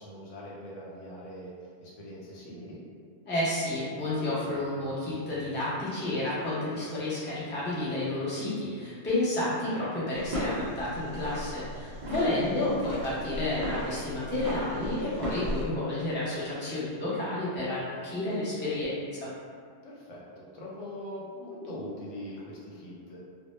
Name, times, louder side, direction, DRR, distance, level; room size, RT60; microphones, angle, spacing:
voice 1, 0.0-2.8 12.4-12.7 19.8-23.2, left 1 dB, 90° left, -5 dB, 1.0 m, -42 dB
voice 2, 3.2-19.3, left 1 dB, 15° left, -10 dB, 0.3 m, -31 dB
sound 1, 10.1-15.6, equal, 55° right, 0.6 m, -36 dB
2.0 x 2.0 x 3.0 m, 2.1 s
omnidirectional pair, 1.2 m